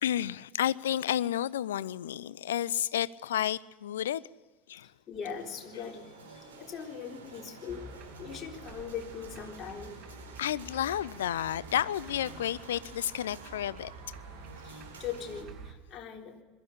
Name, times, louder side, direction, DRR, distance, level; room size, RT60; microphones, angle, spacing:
voice 1, 0.0-4.2 4.7-4.9 10.4-13.9, left 11 dB, 75° left, 21 dB, 0.6 m, -31 dB
voice 2, 5.1-10.0 14.6-16.4, left 7 dB, 40° left, 1 dB, 3.6 m, -41 dB
sound 1, 5.2-15.4, right 3 dB, 75° right, 4.9 m, -50 dB
sound 2, 7.7-15.7, right 3 dB, 45° right, 2.5 m, -49 dB
22.5 x 14.5 x 9.8 m, 1.3 s
figure-of-eight pair, 75°, 0 cm